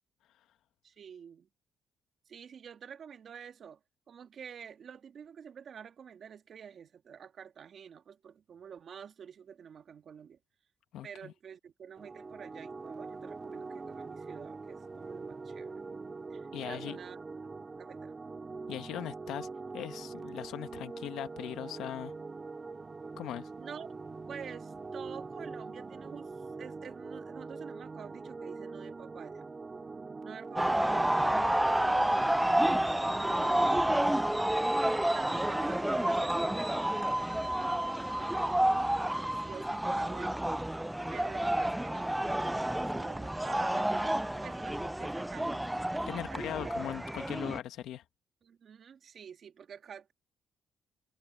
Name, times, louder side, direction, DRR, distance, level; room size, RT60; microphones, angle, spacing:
voice 1, 0.8-1.5 2.3-3.8 4.1-10.4 11.0-15.8 16.3-17.2 17.8-18.2 23.6-23.9 24.3-29.5 30.2-34.7 35.1-40.4 41.1-45.9 46.1-46.7 48.4-50.1, right 7 dB, 55° right, 2.5 m, -48 dB
voice 2, 10.9-11.3 16.5-17.0 18.7-19.5 19.7-22.1 23.2-23.5 46.1-48.0, left 12 dB, 85° left, 1.4 m, -39 dB
sound 1, 12.0-31.4, right 4 dB, 30° right, 2.6 m, -43 dB
sound 2, 30.6-47.6, right 1 dB, 5° right, 0.4 m, -30 dB
cardioid pair, 90°, 0 cm